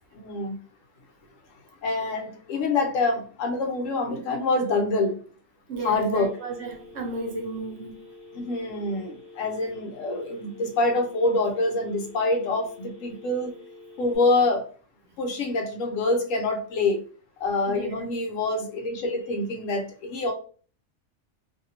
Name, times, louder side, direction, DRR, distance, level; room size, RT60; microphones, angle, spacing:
voice 1, 0.2-0.6 1.8-5.2 5.8-6.4 8.3-13.5 14.0-14.7 15.2-17.0 17.4-20.3, left 2 dB, 75° left, 1.0 m, -26 dB
voice 2, 5.7-8.0 17.7-18.1, right 2 dB, 65° right, 0.8 m, -33 dB
Telephone, 6.2-14.2, left 2 dB, 55° left, 1.4 m, -47 dB
2.6 x 2.6 x 2.8 m
omnidirectional pair, 1.4 m